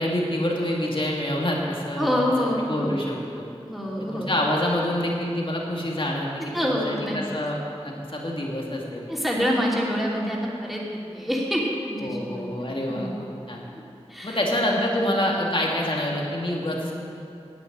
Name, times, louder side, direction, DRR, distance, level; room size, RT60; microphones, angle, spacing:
voice 1, 0.0-3.5 4.0-7.6 7.8-9.1 12.0-13.6 14.2-16.9, left 1 dB, 50° left, -2 dB, 2.6 m, -27 dB
voice 2, 2.0-2.9 3.6-4.3 6.4-7.2 9.1-13.2 14.1-14.4, equal, ahead, -4 dB, 3.1 m, -27 dB
10.5 x 9.0 x 9.0 m, 2.6 s
wide cardioid pair, 45°, 11 cm